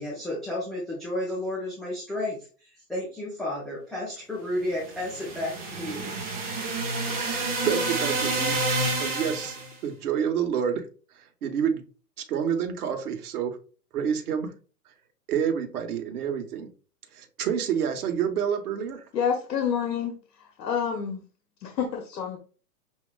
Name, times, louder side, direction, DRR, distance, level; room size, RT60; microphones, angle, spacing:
voice 1, 0.0-6.1, left 1 dB, ahead, 0.6 m, -32 dB
sound 1, 4.8-9.7, right 2 dB, 20° right, 0.9 m, -29 dB
voice 2, 7.1-8.6 9.0-10.9 11.1-11.8 12.3-13.6 13.9-14.5 15.3-16.7 17.1-19.0, right 8 dB, 65° right, 1.3 m, -28 dB
voice 3, 19.1-20.1 20.6-21.2 21.6-22.4, left 7 dB, 85° left, 1.0 m, -28 dB
6.3 x 2.8 x 2.3 m
hypercardioid pair, 140°, 48 cm